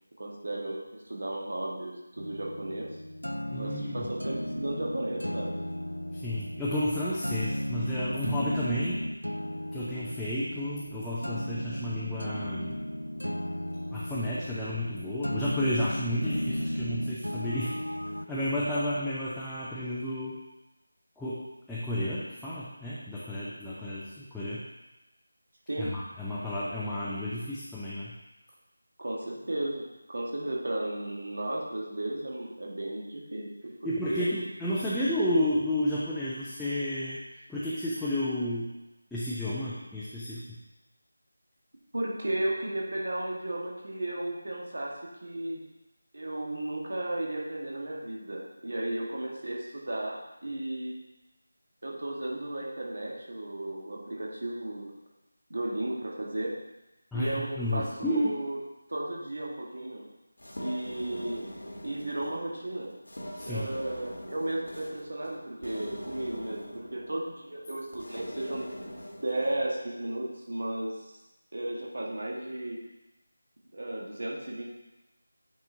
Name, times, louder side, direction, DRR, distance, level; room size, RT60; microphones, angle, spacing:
voice 1, 0.2-2.9 3.6-5.5 25.7-25.9 29.0-33.7 34.1-34.3 41.9-44.9 45.2-45.6 46.1-50.9 51.8-54.9 55.5-56.5 57.1-58.6 58.9-60.1 60.6-61.5 61.8-62.9 63.4-68.7 69.2-71.1 71.5-72.8 73.7-74.6, right 1 dB, 55° right, -2 dB, 1.4 m, -34 dB
sound 1, 2.2-18.3, equal, 90° left, 0.4 m, -35 dB
voice 2, 3.5-4.1 6.1-9.0 9.7-12.8 13.9-17.8 18.3-20.4 21.2-24.6 25.8-28.1 33.8-37.2 37.5-38.7 39.1-40.6 57.1-58.3 63.4-63.7, left 1 dB, ahead, -12 dB, 0.5 m, -32 dB
sound 2, 60.4-69.9, equal, 60° left, 1.2 m, -43 dB
9.1 x 4.3 x 2.6 m, 1.0 s
figure-of-eight pair, 165°, 0 cm